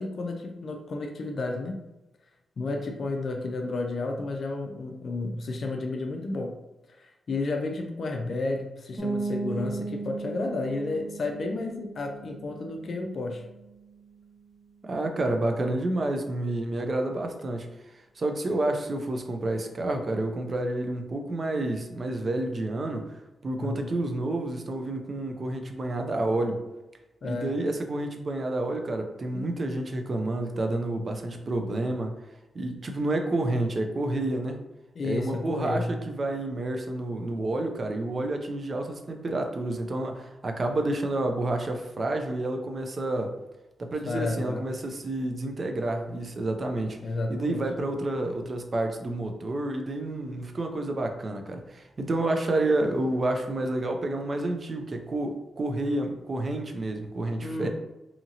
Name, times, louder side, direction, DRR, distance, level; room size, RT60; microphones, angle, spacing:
voice 1, 0.0-1.8 2.6-6.6 7.0-13.4 23.6-23.9 27.2-27.5 29.3-29.5 35.0-36.0 44.1-44.7 47.0-47.7 57.4-57.7, left 2 dB, 60° left, 2 dB, 0.4 m, -32 dB
sound 1, 9.0-14.6, right 3 dB, 30° right, 1.0 m, -37 dB
voice 2, 14.8-17.7 18.2-23.0 23.4-26.6 27.2-32.2 32.5-34.6 35.0-43.3 43.8-47.0 47.3-57.7, right 2 dB, 45° right, 4 dB, 0.5 m, -29 dB
2.8 x 2.6 x 2.7 m, 1.0 s
cardioid pair, 80°, 0 cm